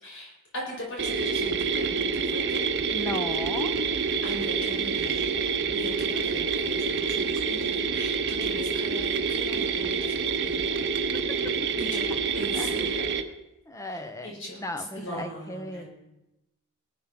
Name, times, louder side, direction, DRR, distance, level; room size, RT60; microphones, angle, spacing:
voice 1, 0.0-2.6 4.2-5.3 5.7-10.7 11.8-12.0 12.3-13.1 14.2-14.6 15.0-15.9, equal, 60° left, -2 dB, 5.8 m, -40 dB
sound 1, 1.0-13.2, right 5 dB, 55° right, 0.9 m, -27 dB
voice 2, 2.9-3.7 11.3-11.7 12.5-13.2 13.7-15.9, left 1 dB, 15° left, 8 dB, 1.0 m, -36 dB
19.5 x 9.2 x 5.3 m, 0.95 s
head